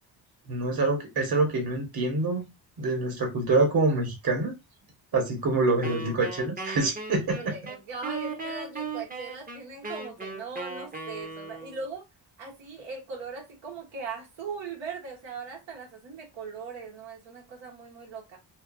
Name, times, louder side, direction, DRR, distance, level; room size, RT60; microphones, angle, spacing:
voice 1, 0.5-2.5 2.8-4.5 5.1-7.5, right 3 dB, 55° right, 1.3 m, -26 dB
Wind instrument woodwind instrument, 5.8-11.8, right 4 dB, 20° right, 0.6 m, -37 dB
voice 2, 7.3-12.0 12.4-18.4, right 4 dB, 90° right, 1.2 m, -39 dB
2.6 x 2.6 x 2.5 m
cardioid pair, 90°, 43 cm